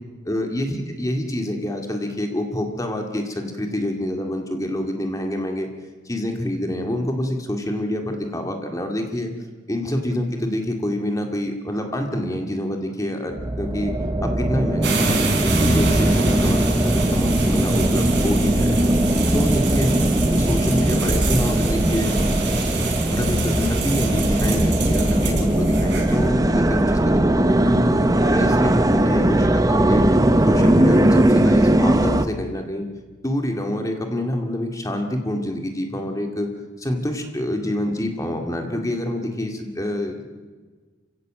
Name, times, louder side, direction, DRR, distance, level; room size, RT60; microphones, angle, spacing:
voice 1, 0.3-5.7 6.1-9.3 9.7-13.9 14.2-18.9 19.3-19.9 20.3-22.1 23.1-30.0 30.5-32.9 33.2-36.5 36.8-40.3, left 1 dB, 15° left, 3 dB, 2.1 m, -26 dB
sound 1, 13.3-32.3, right 1 dB, 20° right, 0.8 m, -19 dB
sound 2, 14.8-26.3, right 2 dB, 60° right, 4.1 m, -26 dB
28.0 x 16.5 x 7.6 m, 1.4 s
head